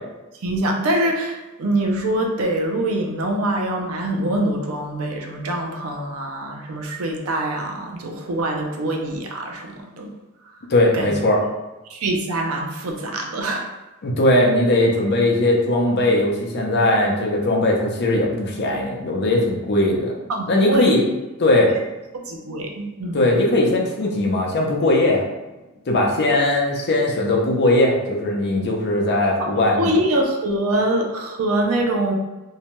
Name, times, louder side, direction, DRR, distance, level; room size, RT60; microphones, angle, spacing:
voice 1, 0.4-10.1 10.9-11.1 11.9-13.7 20.3-20.9 21.7-21.8 22.2-23.2 29.4-32.1, right 1 dB, 80° right, 2 dB, 0.5 m, -24 dB
voice 2, 10.7-11.4 14.0-20.1 20.5-21.0 21.4-21.7 23.1-25.2 25.9-29.9, left 1 dB, 50° left, -1 dB, 0.6 m, -19 dB
2.7 x 2.2 x 2.9 m, 1.1 s
head